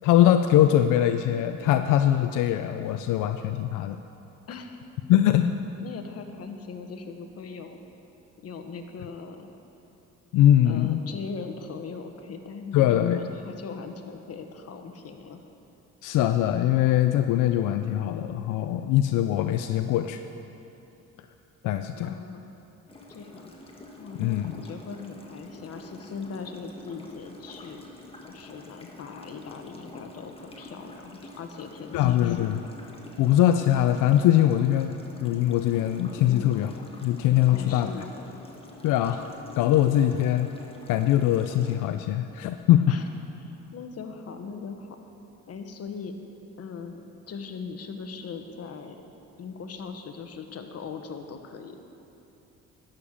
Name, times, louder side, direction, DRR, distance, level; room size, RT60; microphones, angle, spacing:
voice 1, 0.0-4.0 5.1-5.5 10.3-11.0 12.7-13.2 16.0-20.2 21.6-22.2 24.2-24.5 31.9-32.6 33.2-34.9 35.2-36.7 37.0-37.9 38.8-39.3 39.6-40.5 40.9-42.8, left 12 dB, 90° left, 8 dB, 0.5 m, -22 dB
voice 2, 4.5-4.8 5.8-7.8 8.4-9.5 10.6-15.4 22.0-22.5 23.1-23.5 24.0-27.8 28.2-32.5 36.3-36.5 37.5-38.1 42.9-43.0 43.4-45.0 45.5-46.1 46.6-47.0 47.3-49.0 49.4-51.9, left 5 dB, 55° left, 5 dB, 1.2 m, -39 dB
sound 1, 22.9-41.8, left 1 dB, 20° left, 1.6 m, -46 dB
12.5 x 6.7 x 8.7 m, 3.0 s
cardioid pair, 90°, 30 cm